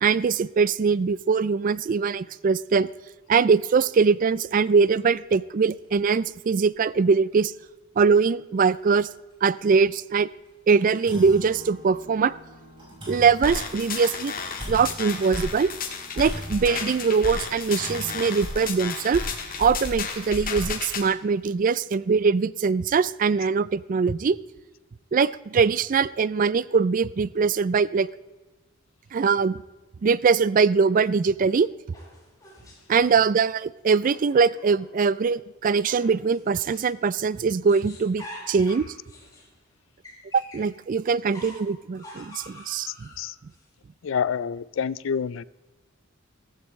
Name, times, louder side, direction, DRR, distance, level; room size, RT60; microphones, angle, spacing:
voice 1, 0.0-2.9 3.3-7.5 8.0-9.1 9.4-10.3 10.7-12.3 13.1-14.3 14.7-15.7 16.2-19.2 19.6-24.4 25.1-28.1 29.1-29.6 30.0-31.7 32.9-38.9 40.3-43.1, right 5 dB, 40° right, 19 dB, 0.3 m, -22 dB
sound 1, 4.7-4.9 5.3-5.4 5.8-5.9 7.0-7.1 7.6-7.7 8.2-8.3 8.8-8.9 9.9-10.1 10.5-10.6 10.8-19.9, equal, 25° right, 5.5 m, -43 dB
sound 2, 13.4-21.0, left 4 dB, 45° left, 1.6 m, -32 dB
sound 3, 31.5-33.0 33.9-35.2 35.9-37.0 37.3-40.7 41.3-43.6, left 1 dB, 20° left, 4.8 m, -47 dB
voice 2, 42.9-43.4 44.0-45.4, left 7 dB, 65° left, 19 dB, 0.4 m, -28 dB
15.5 x 15.0 x 3.2 m, 1.2 s
head